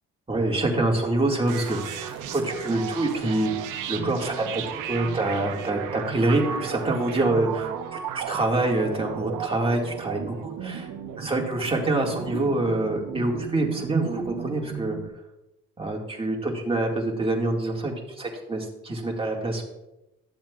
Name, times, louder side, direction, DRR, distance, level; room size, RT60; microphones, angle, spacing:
voice 1, 0.3-3.5 3.9-10.9 11.2-15.0 15.8-19.6, right 2 dB, 20° right, 0 dB, 1.9 m, -26 dB
sound 1, 1.5-15.1, right 9 dB, 85° right, 0.7 m, -34 dB
12.5 x 7.2 x 2.4 m, 0.95 s
cardioid pair, 90°, 30 cm